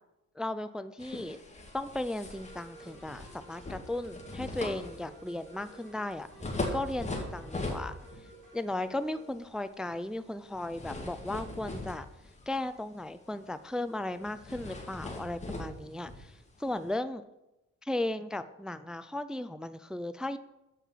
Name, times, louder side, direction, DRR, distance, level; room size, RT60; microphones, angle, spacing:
voice 1, 0.4-1.4 1.7-6.3 6.7-8.0 8.5-12.1 12.5-16.3 16.6-17.2 17.8-20.4, left 1 dB, 5° right, 12 dB, 0.3 m, -36 dB
sound 1, 1.0-8.4 8.7-9.0 10.5-12.8 13.1-13.3 13.6-13.7 14.2-16.9, left 2 dB, 25° left, 2.1 m, -40 dB
sound 2, 2.3-9.2, right 2 dB, 80° right, 3.1 m, -54 dB
7.5 x 5.8 x 5.7 m, 0.93 s
cardioid pair, 90°, 30 cm